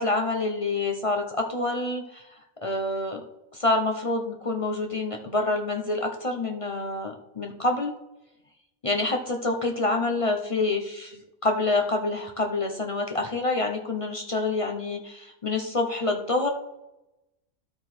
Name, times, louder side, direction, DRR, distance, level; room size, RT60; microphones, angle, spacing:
voice 1, 0.0-2.2 2.6-3.2 3.5-8.0 8.8-16.5, left 2 dB, 35° left, 3 dB, 0.5 m, -27 dB
12.5 x 4.4 x 4.3 m, 0.93 s
omnidirectional pair, 1.5 m